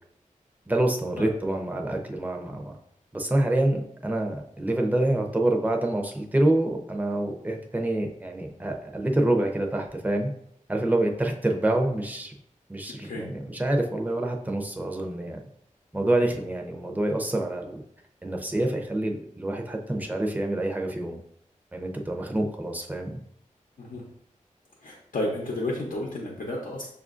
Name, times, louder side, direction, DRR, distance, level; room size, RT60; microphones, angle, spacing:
voice 1, 0.7-2.7 3.1-10.3 10.7-12.3 12.7-15.4 15.9-17.8 18.2-21.2 21.7-23.2, right 1 dB, 10° right, 1 dB, 0.6 m, -27 dB
voice 2, 24.8-26.9, left 1 dB, 80° left, -3 dB, 0.7 m, -32 dB
6.1 x 2.5 x 2.5 m, 0.72 s
wide cardioid pair, 60°, 14 cm